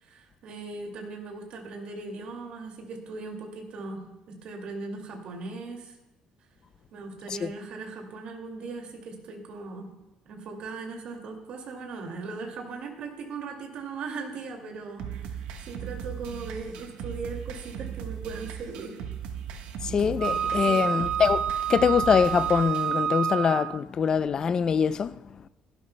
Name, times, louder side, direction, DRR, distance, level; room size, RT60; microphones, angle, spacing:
voice 1, 0.0-5.9 6.9-9.9 10.3-19.0 20.7-20.9, right 4 dB, 55° right, 2.2 m, -39 dB
sound 1, 15.0-23.0, right 8 dB, 90° right, 1.2 m, -38 dB
voice 2, 19.8-21.4 21.7-25.1, left 6 dB, 35° left, 0.4 m, -23 dB
Wind instrument woodwind instrument, 20.2-23.8, right 8 dB, 40° right, 0.6 m, -28 dB
17.0 x 12.5 x 2.2 m
cardioid pair, 145°, 2 cm